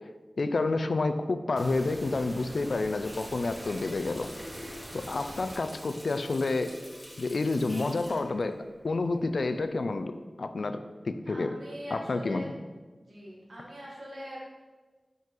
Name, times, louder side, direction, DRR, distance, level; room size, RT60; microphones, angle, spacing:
voice 1, 0.4-4.3 4.9-6.7 7.2-8.6 8.8-10.8 11.0-11.5 11.9-12.5, left 3 dB, 80° left, 9 dB, 0.3 m, -29 dB
sound 1, 1.6-5.6, right 1 dB, 25° right, 0.7 m, -45 dB
Water tap faucet, 3.0-9.4 9.8-10.0, equal, ahead, 1.8 m, -47 dB
voice 2, 11.3-12.5 13.0-14.4, equal, 75° right, -5 dB, 1.7 m, -42 dB
5.3 x 5.3 x 3.8 m, 1.3 s
wide cardioid pair, 55°, 0 cm